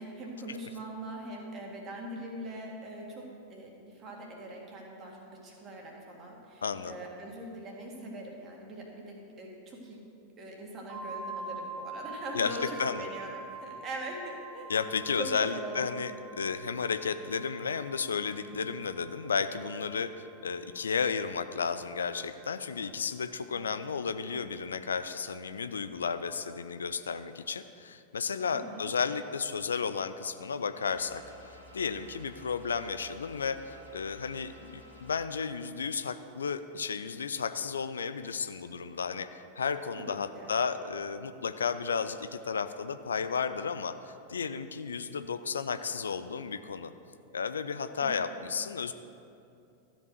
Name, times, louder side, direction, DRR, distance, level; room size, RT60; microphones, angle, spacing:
voice 1, 0.0-10.0 10.4-14.7 15.2-15.9 23.5-23.8 28.5-28.8 40.0-40.5 48.0-48.3, right 1 dB, 30° right, -1 dB, 2.0 m, -42 dB
voice 2, 6.6-7.0 12.3-13.1 14.7-16.1 16.4-46.9 47.3-48.9, left 5 dB, 70° left, 11 dB, 0.4 m, -33 dB
sound 1, 10.9-20.5, right 3 dB, 55° right, 1.5 m, -45 dB
sound 2, 30.8-35.2, left 1 dB, 75° right, 1.7 m, -53 dB
13.0 x 5.2 x 6.6 m, 2.6 s
figure-of-eight pair, 90°, 0 cm